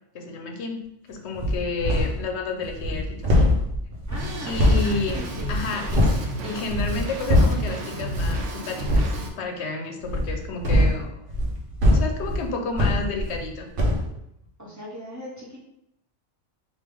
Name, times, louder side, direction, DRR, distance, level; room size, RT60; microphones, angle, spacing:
voice 1, 0.1-3.5 4.4-6.2 6.4-11.1 11.8-13.7, left 3 dB, 65° left, 3 dB, 0.8 m, -31 dB
sound 1, 1.3-2.3 2.6-6.3 6.6-7.7 8.1-8.5 8.8-9.2 10.0-13.5 13.8-14.1, left 1 dB, 50° right, 0.8 m, -22 dB
voice 2, 4.1-5.5 14.6-15.6, left 1 dB, 20° right, -5 dB, 0.6 m, -39 dB
Drum kit, 4.1-9.3, right 2 dB, 75° right, 0.9 m, -33 dB
3.3 x 2.6 x 3.4 m, 0.80 s
omnidirectional pair, 1.3 m